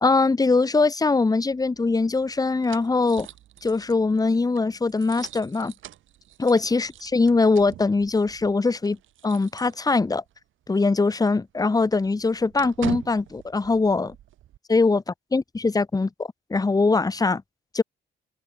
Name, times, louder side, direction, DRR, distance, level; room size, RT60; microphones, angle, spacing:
voice 1, 0.0-3.3 3.6-5.7 6.4-9.0 9.2-10.2 10.7-14.1 14.7-15.0 15.3-17.4 17.7-17.8, left 3 dB, 20° left, 1.0 m, -22 dB
sound 1, 1.5-10.3 10.6-10.8 11.1-14.6, right 12 dB, 80° right, 5.0 m, -43 dB
open air
cardioid pair, 90°, 20 cm